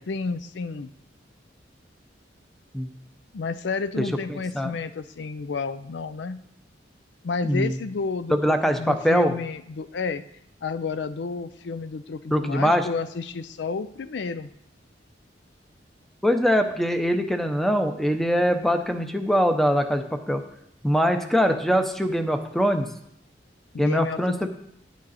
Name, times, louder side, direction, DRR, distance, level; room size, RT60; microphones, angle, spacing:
voice 1, 0.1-0.9 3.3-6.4 7.2-10.2 10.6-14.5 23.7-24.5, left 4 dB, 70° left, 13 dB, 0.4 m, -31 dB
voice 2, 4.3-4.7 7.4-7.8 8.3-9.3 12.3-12.9 16.2-20.4 20.8-22.9 23.8-24.5, equal, ahead, 7 dB, 0.7 m, -22 dB
9.7 x 9.2 x 4.1 m, 0.76 s
head